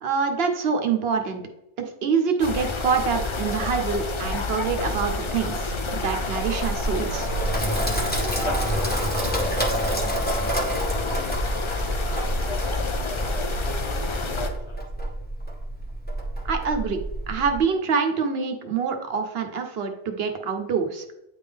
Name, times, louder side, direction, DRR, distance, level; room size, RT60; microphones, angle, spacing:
voice 1, 0.0-1.4 2.0-7.3 16.4-17.0 17.3-21.0, right 5 dB, 75° right, 6 dB, 1.0 m, -25 dB
sound 1, 2.4-14.5, left 2 dB, 40° left, 0.5 m, -29 dB
Sink (filling or washing), 6.6-17.6, right 1 dB, 10° left, 1.0 m, -29 dB
voice 2, 8.3-14.8, left 2 dB, 80° left, -2 dB, 1.6 m, -40 dB
9.2 x 3.6 x 3.4 m, 0.90 s
omnidirectional pair, 1.0 m